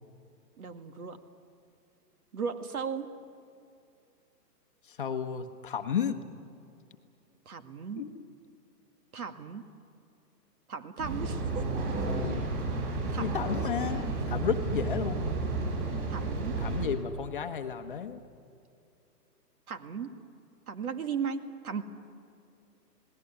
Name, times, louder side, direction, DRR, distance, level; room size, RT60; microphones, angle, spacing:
voice 1, 0.6-1.2 2.3-3.1 7.5-8.1 9.1-9.7 10.7-11.7 12.2-12.4 13.1-13.4 16.1-16.6 19.7-20.2 20.7-21.8, right 6 dB, 60° right, 8 dB, 2.2 m, -36 dB
voice 2, 4.9-6.2 8.0-8.2 13.2-15.4 16.6-18.2, left 7 dB, 30° left, 6 dB, 1.1 m, -33 dB
sound 1, 11.0-16.9, right 3 dB, 35° right, 6.9 m, -31 dB
27.5 x 19.5 x 9.8 m, 2.6 s
hypercardioid pair, 170°, 49 cm